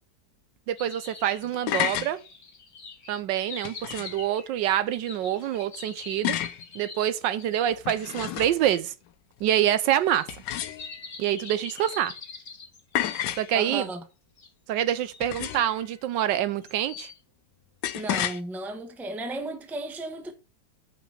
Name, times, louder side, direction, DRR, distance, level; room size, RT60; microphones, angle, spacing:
voice 1, 0.7-2.2 3.1-6.4 6.7-8.9 9.4-10.3 11.2-12.1 13.4-13.9 14.7-17.1, right 11 dB, 80° right, 1.3 m, -26 dB
sound 1, 0.8-7.8 8.7-8.8 10.1-13.8 14.4-14.5 15.1-15.7 16.4-17.2, left 4 dB, 40° left, 1.7 m, -44 dB
sound 2, 1.4-2.1 3.6-4.2 6.2-6.6 7.7-8.7 10.3-11.1 12.9-13.5 15.2-15.8 17.8-18.4, left 11 dB, 70° left, 1.2 m, -30 dB
voice 2, 13.5-14.0 17.9-20.3, right 2 dB, ahead, 0.7 m, -34 dB
6.0 x 6.0 x 5.6 m
omnidirectional pair, 2.0 m